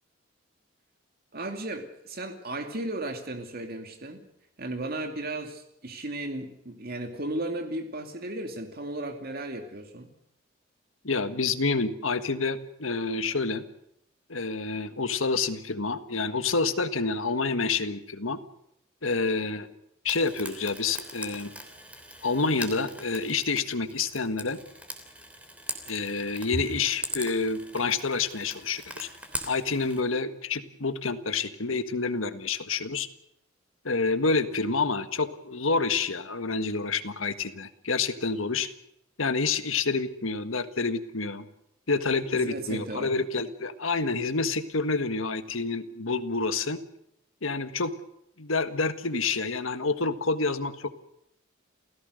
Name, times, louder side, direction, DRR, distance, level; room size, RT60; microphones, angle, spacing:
voice 1, 1.3-4.2 4.6-10.1 42.3-43.1, right 1 dB, 50° right, 6 dB, 2.4 m, -35 dB
voice 2, 11.0-13.6 14.3-18.4 19.0-19.7 20.0-21.5 22.2-24.6 25.9-29.1 29.5-33.1 33.8-38.7 39.2-41.5 41.9-46.8 47.4-47.9 48.4-50.9, left 4 dB, 85° left, 11 dB, 1.7 m, -28 dB
Frying (food), 20.0-30.0, right 1 dB, 5° right, 3.2 m, -41 dB
29.0 x 16.5 x 6.6 m, 0.76 s
head